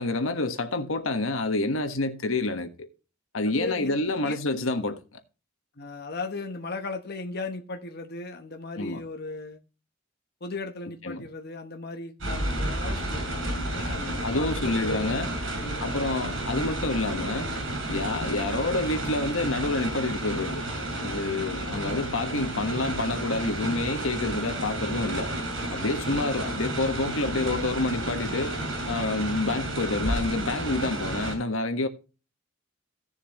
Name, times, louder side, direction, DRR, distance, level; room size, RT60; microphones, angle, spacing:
voice 1, 0.0-2.9 3.3-5.0 8.8-9.0 11.0-11.3 14.2-15.3 15.8-17.5 17.9-20.7 21.0-25.3 25.7-28.6 28.9-31.9, left 2 dB, 85° left, 1.4 m, -28 dB
voice 2, 3.5-4.4 5.8-9.6 10.4-15.9 16.2-16.4 18.3-18.4, left 3 dB, 50° left, 1.0 m, -37 dB
sound 1, 12.2-31.4, right 1 dB, 70° right, 5.4 m, -31 dB
16.5 x 7.0 x 3.0 m
head